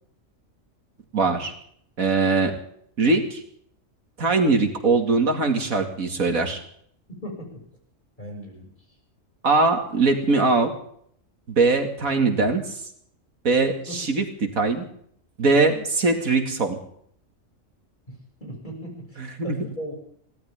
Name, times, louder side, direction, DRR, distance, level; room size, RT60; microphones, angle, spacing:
voice 1, 1.1-1.5 2.0-2.5 3.0-3.4 4.2-6.6 9.4-10.7 11.5-12.8 13.4-14.2 14.6-14.9 15.4-16.8 19.2-19.6, right 3 dB, 85° right, 5 dB, 2.8 m, -21 dB
voice 2, 7.2-7.6 8.2-8.7 13.9-14.0 18.1-19.9, equal, 35° left, 0 dB, 7.0 m, -37 dB
23.0 x 17.5 x 3.7 m, 0.65 s
omnidirectional pair, 1.4 m